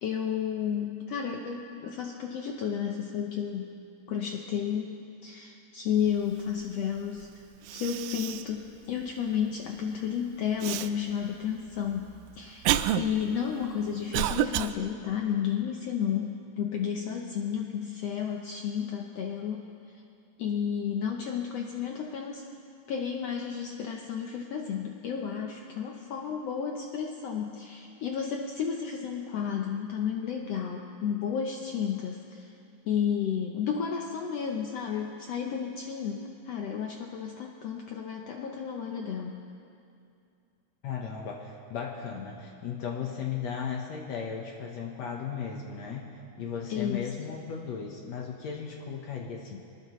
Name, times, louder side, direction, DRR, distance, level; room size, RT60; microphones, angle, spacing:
voice 1, 0.0-3.7 4.1-4.9 5.2-7.3 7.7-12.1 12.4-12.7 13.0-19.6 19.9-20.0 20.4-22.4 22.9-32.6 32.8-39.3 46.7-47.1, left 8 dB, 85° left, 1 dB, 1.4 m, -32 dB
Cough, 7.2-7.3 7.6-8.6 9.0-9.1 10.6-10.9 11.7-14.7, right 12 dB, 85° right, 2.2 m, -29 dB
voice 2, 40.8-49.6, left 7 dB, 65° left, 0 dB, 2.0 m, -36 dB
24.0 x 19.0 x 3.1 m, 2.5 s
omnidirectional pair, 4.0 m